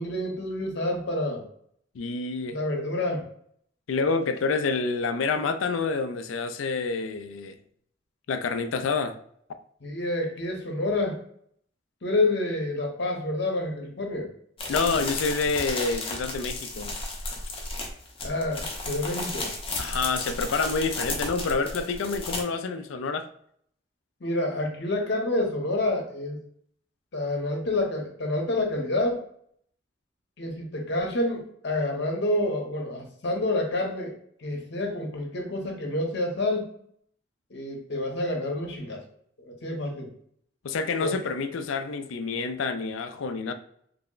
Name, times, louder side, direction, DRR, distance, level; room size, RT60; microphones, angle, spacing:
voice 1, 0.0-1.4 2.5-3.2 9.8-11.2 12.0-14.3 18.2-19.5 24.2-26.4 27.1-29.2 30.4-34.1 34.4-36.7 37.5-39.0 39.4-40.1 41.0-41.1, left 2 dB, 60° left, 0.9 m, -28 dB
voice 2, 1.9-2.6 3.9-7.6 8.3-9.2 14.7-17.0 19.8-23.3 40.6-43.5, left 4 dB, 85° left, 0.4 m, -28 dB
sound 1, 14.6-22.4, left 2 dB, 30° left, 0.7 m, -33 dB
3.3 x 2.1 x 3.7 m
head